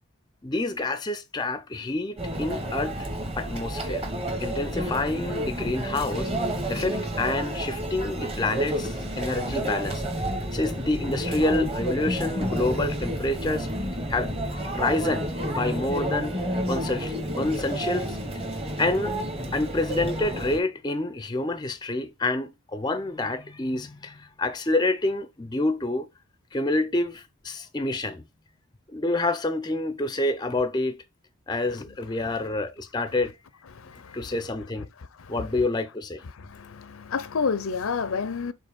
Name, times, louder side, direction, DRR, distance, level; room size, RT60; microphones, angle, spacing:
voice 1, 0.4-3.1 3.4-4.0 4.4-6.3 6.7-10.0 10.5-13.7 14.1-14.4 14.7-16.4 16.7-18.2 18.8-19.1 19.5-26.1 26.5-28.2 28.9-31.0 31.5-33.4 34.1-34.9 35.3-36.2, left 2 dB, 20° left, 0.5 m, -28 dB
Conversation / Chatter / Crowd, 2.2-20.6, right 1 dB, 25° right, 1.1 m, -30 dB
voice 2, 36.5-38.5, left 5 dB, 70° left, 0.5 m, -28 dB
5.5 x 3.8 x 5.2 m
head